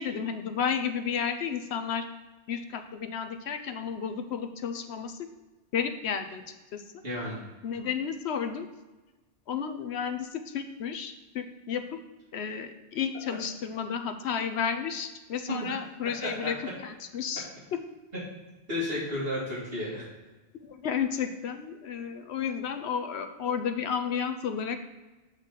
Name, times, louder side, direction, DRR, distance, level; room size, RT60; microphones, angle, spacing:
voice 1, 0.0-2.0 2.5-5.3 5.7-6.4 6.7-6.8 7.6-8.7 9.5-11.9 12.3-16.6 16.8-17.8 20.5-24.9, left 7 dB, 75° left, 8 dB, 0.9 m, -32 dB
voice 2, 7.0-7.4 15.5-15.7 18.7-20.0, left 1 dB, 60° right, -9 dB, 2.6 m, -32 dB
8.1 x 3.8 x 6.3 m, 1.2 s
omnidirectional pair, 1.1 m